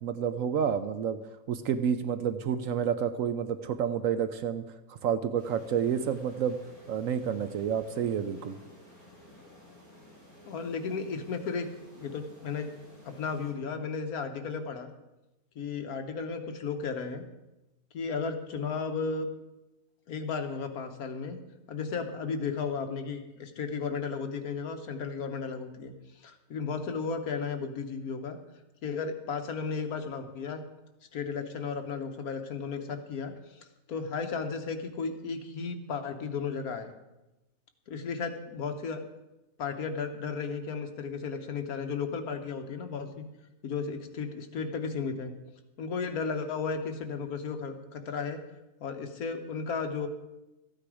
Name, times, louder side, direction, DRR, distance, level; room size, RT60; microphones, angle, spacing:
voice 1, 0.0-1.2 1.5-4.6 4.9-6.6 6.9-8.6, right 8 dB, 65° right, 11 dB, 0.9 m, -29 dB
sound 1, 5.4-13.5, left 1 dB, 10° right, 3.9 m, -54 dB
voice 2, 10.4-11.7 12.0-12.7 13.0-14.9 15.5-17.2 17.9-19.3 20.1-21.4 21.7-28.4 28.8-30.6 31.1-36.9 37.9-39.0 39.6-43.2 43.6-45.3 45.8-48.4 48.8-50.1, left 5 dB, 70° left, 6 dB, 1.5 m, -34 dB
13.5 x 9.0 x 4.9 m, 0.99 s
omnidirectional pair, 1.7 m